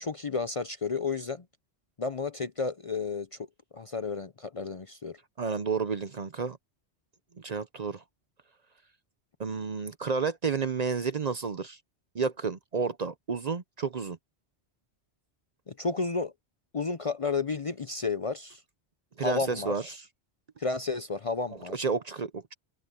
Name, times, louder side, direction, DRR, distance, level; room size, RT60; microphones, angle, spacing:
voice 1, 0.0-1.4 2.0-3.4 3.7-5.2 15.7-16.3 16.7-18.6 19.2-19.7 20.6-21.7, left 4 dB, 40° left, 0.6 m, -32 dB
voice 2, 5.4-6.6 7.4-8.0 9.4-11.8 12.1-14.2 19.2-20.0 21.7-22.5, right 5 dB, 45° right, 0.7 m, -31 dB
omnidirectional pair, 1.1 m